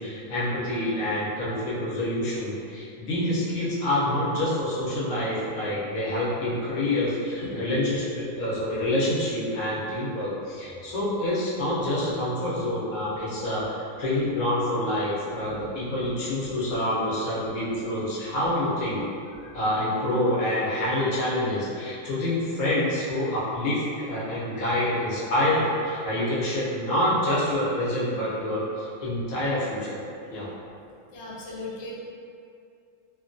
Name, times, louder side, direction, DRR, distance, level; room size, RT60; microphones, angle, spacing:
voice 1, 0.0-19.0 19.5-30.0 30.3-30.5, left 1 dB, 85° left, -7 dB, 1.2 m, -27 dB
voice 2, 15.5-16.1 19.4-19.6 31.1-32.0, left 2 dB, 65° left, -5 dB, 0.8 m, -39 dB
3.0 x 2.2 x 2.5 m, 2.4 s
omnidirectional pair, 1.4 m